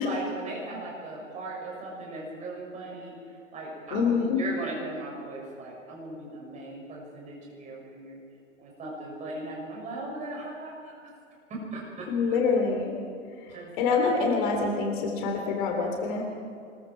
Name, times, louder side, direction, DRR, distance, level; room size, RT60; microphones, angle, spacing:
voice 1, 0.0-8.2 8.6-11.1 11.5-12.4 13.5-14.0, right 2 dB, 20° right, -2 dB, 6.8 m, -38 dB
voice 2, 3.9-4.4 12.1-13.0 13.4-16.2, left 4 dB, 40° left, 2 dB, 3.1 m, -26 dB
26.0 x 21.5 x 4.6 m, 2.5 s
figure-of-eight pair, 115°, 39 cm